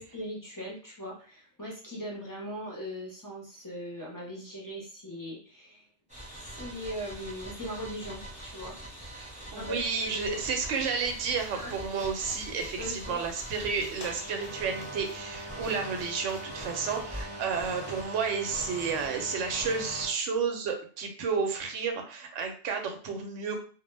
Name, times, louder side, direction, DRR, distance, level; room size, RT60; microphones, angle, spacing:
voice 1, 0.0-5.8 6.4-8.8 9.5-10.4 11.6-11.7 12.8-13.2 17.3-17.4, equal, 25° left, -4 dB, 0.5 m, -39 dB
sound 1, 6.1-20.1, right 1 dB, 5° right, 0.8 m, -42 dB
voice 2, 9.2-23.6, right 5 dB, 85° right, 4 dB, 0.9 m, -31 dB
sound 2, 9.6-17.7, left 2 dB, 60° left, 0.7 m, -51 dB
2.2 x 2.1 x 3.0 m, 0.41 s
omnidirectional pair, 1.2 m